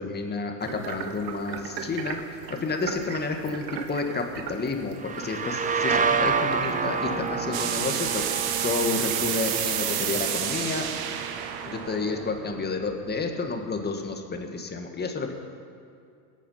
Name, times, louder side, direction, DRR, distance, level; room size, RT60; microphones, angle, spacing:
voice 1, 0.0-8.3 8.6-10.9 11.7-15.3, left 4 dB, 20° left, 4 dB, 1.8 m, -30 dB
sound 1, 0.6-10.3, right 6 dB, 80° right, 1.5 m, -40 dB
sound 2, 5.0-12.6, right 5 dB, 15° right, 0.8 m, -29 dB
sound 3, 7.5-13.2, right 9 dB, 45° right, 1.5 m, -30 dB
21.5 x 8.4 x 5.7 m, 2.4 s
hypercardioid pair, 100°, 49 cm